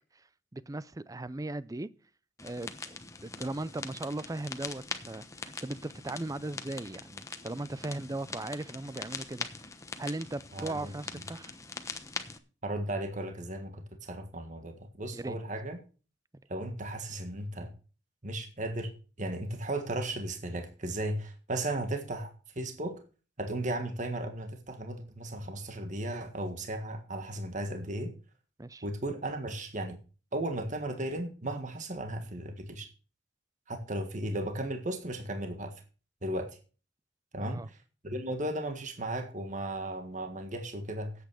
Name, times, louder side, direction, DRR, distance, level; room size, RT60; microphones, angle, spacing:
voice 1, 0.5-1.9 2.4-3.0 3.2-9.5 10.0-11.5 15.1-15.4 28.6-28.8 37.4-37.7, right 2 dB, 20° right, 0.5 m, -38 dB
sound 1, 2.4-12.4, left 3 dB, 15° left, 1.1 m, -42 dB
voice 2, 10.5-11.2 12.6-15.8 16.5-17.7 18.2-18.9 19.2-23.0 23.4-28.1 28.8-30.0 30.3-32.9 33.7-35.7 36.2-36.6 37.3-37.8 38.0-41.1, right 1 dB, 45° right, 1.7 m, -35 dB
10.0 x 8.5 x 6.3 m
head